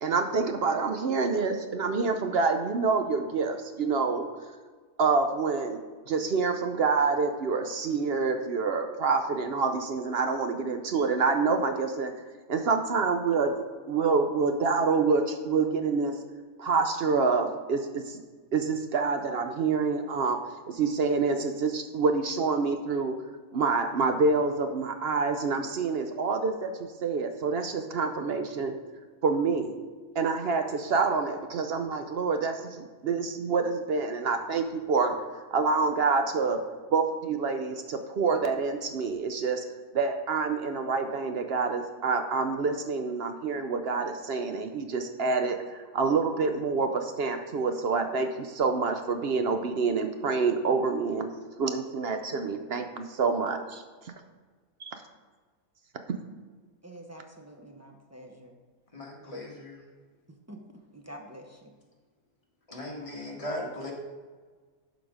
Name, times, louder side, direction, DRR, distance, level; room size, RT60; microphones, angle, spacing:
voice 1, 0.0-4.3 5.0-12.1 12.5-13.5 13.9-16.2 16.6-18.2 18.5-20.4 20.7-23.2 23.5-28.7 29.2-29.8 30.2-35.1 35.5-36.6 36.9-39.6 39.9-51.3 51.6-53.8 54.8-55.0, right 4 dB, 60° right, 6 dB, 0.7 m, -27 dB
voice 2, 56.8-58.6 60.3-60.6 60.9-61.7, right 1 dB, 20° right, 2 dB, 0.4 m, -47 dB
voice 3, 58.9-59.8 62.7-63.9, left 1 dB, 25° left, -2 dB, 1.6 m, -37 dB
11.5 x 4.1 x 4.9 m, 1.5 s
omnidirectional pair, 1.5 m